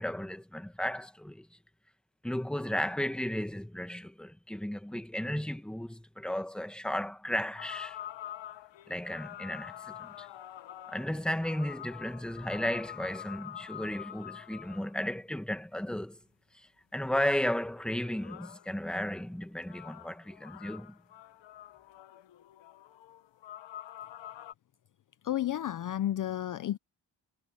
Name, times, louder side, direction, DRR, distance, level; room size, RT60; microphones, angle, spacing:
voice 1, 0.0-1.5 2.2-8.0 8.9-10.3 10.9-16.2 16.5-21.0, left 1 dB, ahead, 1.1 m, -34 dB
sound 1, 7.6-14.9 17.8-18.7 19.7-24.5, left 12 dB, 90° left, 1.0 m, -46 dB
voice 2, 25.2-26.8, left 12 dB, 50° left, 0.4 m, -31 dB
wide cardioid pair, 135°, 43 cm